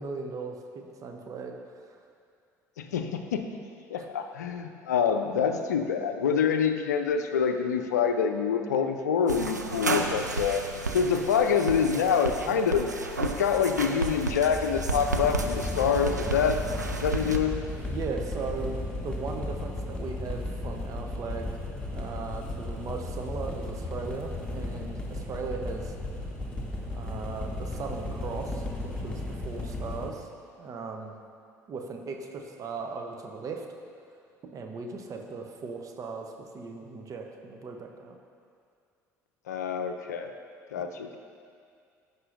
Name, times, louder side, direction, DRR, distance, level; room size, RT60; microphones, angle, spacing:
voice 1, 0.0-2.0 17.9-18.8 19.0-21.6 21.9-26.0 26.9-30.3 30.6-31.1 31.7-33.7 34.4-38.2 40.8-40.9, right 4 dB, 40° right, 3 dB, 1.0 m, -38 dB
voice 2, 2.8-3.4 3.9-10.6 10.9-12.9 13.2-16.6 17.0-17.5 39.5-40.3 40.7-41.2, left 6 dB, 75° left, 6 dB, 0.5 m, -26 dB
sound 1, 9.3-17.4, right 4 dB, 90° right, 0.4 m, -33 dB
sound 2, 13.5-30.1, left 1 dB, 10° left, 1.6 m, -35 dB
15.5 x 5.5 x 2.6 m, 2.3 s
figure-of-eight pair, 55°, 9 cm